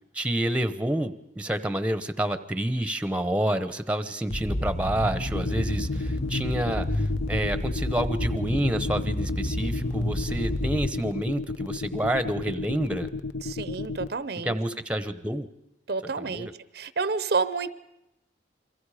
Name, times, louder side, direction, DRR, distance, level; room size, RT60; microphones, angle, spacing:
voice 1, 0.1-13.1 14.4-15.5 16.0-16.5, right 1 dB, 5° right, 11 dB, 0.9 m, -28 dB
sound 1, 4.3-10.9, left 1 dB, 35° left, 0.7 m, -30 dB
sound 2, 5.3-14.1, left 3 dB, 65° left, 0.8 m, -33 dB
voice 2, 13.4-14.6 15.9-16.5 16.7-17.7, right 4 dB, 55° right, 15 dB, 0.7 m, -29 dB
29.0 x 23.0 x 5.0 m, 0.89 s
head